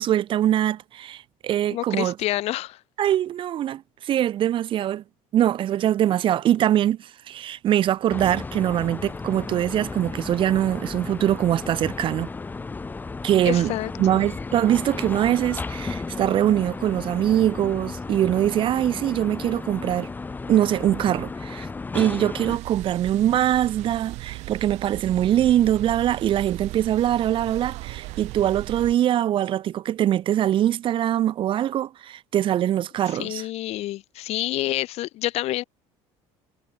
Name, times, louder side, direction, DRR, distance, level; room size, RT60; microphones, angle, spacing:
voice 1, 0.0-2.1 3.0-5.0 5.3-12.3 13.2-20.1 20.5-21.7 21.9-33.4, right 11 dB, 45° right, 1.7 m, -23 dB
voice 2, 1.7-2.8 13.5-14.2 33.1-35.6, left 16 dB, 60° left, 7.4 m, -28 dB
sound 1, 8.1-22.6, left 3 dB, 15° left, 2.5 m, -34 dB
costco sounds, 22.5-28.9, right 20 dB, 70° right, 6.6 m, -37 dB
cardioid pair, 140°, 12 cm